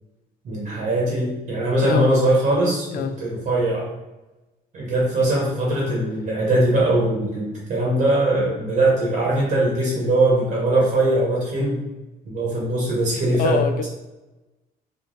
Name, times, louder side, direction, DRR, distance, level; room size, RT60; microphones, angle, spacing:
voice 1, 0.4-3.9 4.7-11.8 12.2-13.6, right 1 dB, 55° right, -4 dB, 1.3 m, -21 dB
voice 2, 1.8-2.2 2.9-3.1 13.4-13.9, left 5 dB, 55° left, 8 dB, 0.4 m, -23 dB
3.8 x 2.2 x 3.9 m, 1.1 s
cardioid pair, 110°, 17 cm